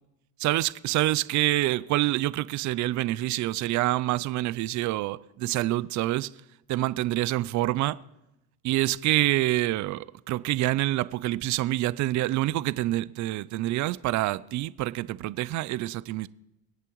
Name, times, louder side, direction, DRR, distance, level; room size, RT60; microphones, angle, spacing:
voice 1, 0.4-6.3 6.7-8.0 8.6-16.3, right 16 dB, 50° right, 0.5 m, -26 dB
25.0 x 8.4 x 3.1 m
cardioid pair, 110°, 39 cm